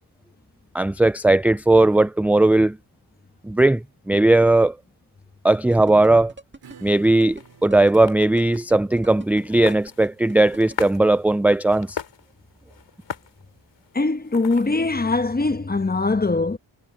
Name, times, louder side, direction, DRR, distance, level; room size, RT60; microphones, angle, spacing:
voice 1, 0.7-2.8 3.4-4.8 5.4-6.3 6.8-12.0, right 2 dB, 5° right, 0.3 m, -18 dB
sound 1, 5.5-10.7, right 3 dB, 25° right, 1.8 m, -42 dB
Acoustic guitar / Strum, 6.6-13.8, right 7 dB, 50° right, 3.2 m, -54 dB
sound 2, 6.8-14.9, left 7 dB, 65° left, 4.7 m, -40 dB
voice 2, 13.9-16.6, left 3 dB, 20° left, 1.2 m, -22 dB
cardioid pair, 65°, 46 cm